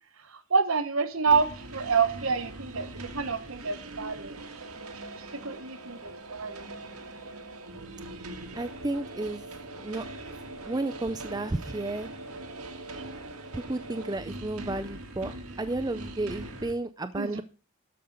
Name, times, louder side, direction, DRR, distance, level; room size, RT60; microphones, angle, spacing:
voice 1, 0.5-4.3 4.8-4.9 5.4-6.7 17.2-17.4, right 5 dB, 65° right, 1.2 m, -28 dB
sound 1, 1.2-16.7, right 2 dB, 85° right, 1.7 m, -42 dB
voice 2, 8.5-9.4 9.8-10.0 10.7-12.1 13.5-17.4, right 2 dB, 15° right, 0.4 m, -32 dB
12.5 x 5.3 x 6.6 m
head